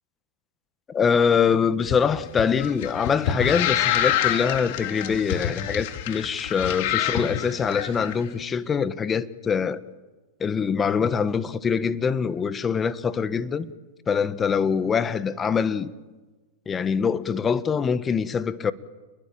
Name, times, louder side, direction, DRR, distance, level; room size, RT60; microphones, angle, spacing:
voice 1, 0.9-9.8 10.4-13.7 14.1-15.9 16.7-18.7, left 6 dB, 20° left, 1.4 m, -24 dB
sound 1, 1.8-8.1, left 10 dB, 60° left, 3.2 m, -27 dB
29.0 x 21.5 x 8.9 m
hypercardioid pair, 120°, 0 cm